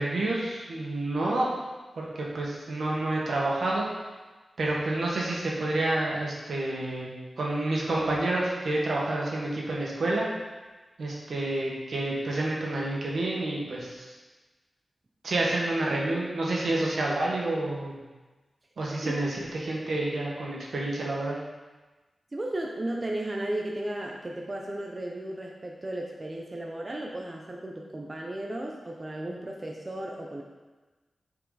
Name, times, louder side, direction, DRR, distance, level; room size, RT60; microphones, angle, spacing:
voice 1, 0.0-1.5 2.0-3.9 4.6-7.1 7.4-10.3 11.0-14.1 15.2-18.0 18.8-21.4, right 2 dB, 70° right, -3 dB, 1.7 m, -29 dB
voice 2, 22.3-30.4, right 1 dB, 25° right, -1 dB, 0.7 m, -34 dB
9.6 x 4.7 x 4.1 m, 1.2 s
wide cardioid pair, 145°, 0 cm